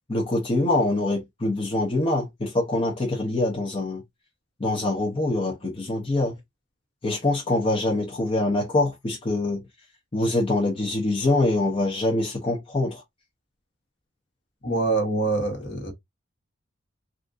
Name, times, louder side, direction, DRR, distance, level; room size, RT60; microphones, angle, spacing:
voice 1, 0.1-4.0 4.6-6.3 7.0-9.6 10.1-13.0, left 2 dB, 25° left, 0.7 m, -24 dB
voice 2, 14.6-15.9, right 3 dB, 50° left, 1.2 m, -25 dB
3.5 x 2.6 x 2.5 m
head